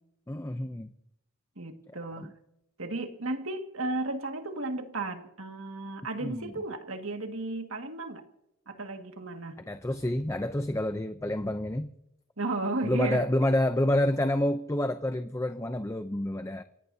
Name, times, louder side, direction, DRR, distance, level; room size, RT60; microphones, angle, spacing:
voice 1, 0.3-0.9 2.2-2.3 6.2-6.5 9.7-11.9 12.8-16.6, left 1 dB, 15° left, 0.6 m, -28 dB
voice 2, 1.6-2.3 2.8-8.2 8.7-9.6 12.4-13.3, right 2 dB, 70° right, 2.0 m, -34 dB
29.0 x 17.5 x 2.8 m
head